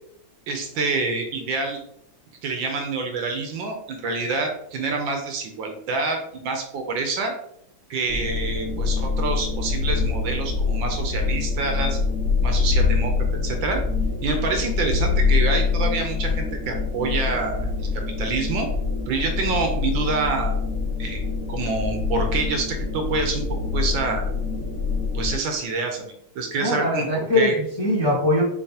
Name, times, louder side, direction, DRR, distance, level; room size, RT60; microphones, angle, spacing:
voice 1, 0.5-1.8 2.4-7.3 7.9-12.0 12.4-13.1 13.4-13.8 14.2-17.9 18.2-18.7 19.1-20.5 21.0-21.2 21.5-24.2 25.1-27.6, right 3 dB, 70° right, 4 dB, 1.4 m, -27 dB
sound 1, 8.1-25.4, left 4 dB, 55° left, 1.8 m, -25 dB
voice 2, 26.6-28.4, left 1 dB, 20° left, -5 dB, 0.7 m, -21 dB
6.6 x 2.9 x 2.8 m, 0.72 s
omnidirectional pair, 2.3 m